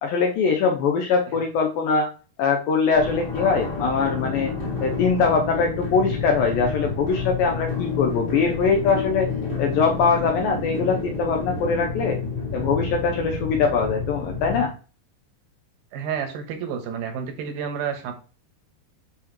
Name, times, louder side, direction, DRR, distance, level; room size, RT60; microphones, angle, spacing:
voice 1, 0.0-2.1 2.4-4.5 4.8-9.3 9.6-12.2 12.5-14.7, left 5 dB, 75° left, 2 dB, 2.4 m, -22 dB
sound 1, 2.9-14.6, left 4 dB, 40° left, 2.2 m, -29 dB
voice 2, 15.9-18.1, right 7 dB, 75° right, 5 dB, 2.9 m, -30 dB
7.3 x 6.0 x 3.0 m, 0.35 s
omnidirectional pair, 4.4 m